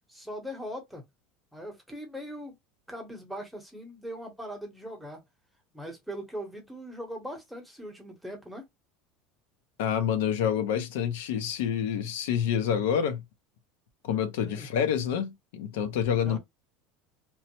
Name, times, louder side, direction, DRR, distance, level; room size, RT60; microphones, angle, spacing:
voice 1, 0.1-1.0 1.5-2.5 2.9-5.2 5.7-8.6 14.4-14.7 16.2-16.4, equal, ahead, 0.8 m, -40 dB
voice 2, 9.8-13.2 14.0-16.4, left 8 dB, 85° left, 0.6 m, -27 dB
3.0 x 2.0 x 2.9 m
cardioid pair, 165°, 0 cm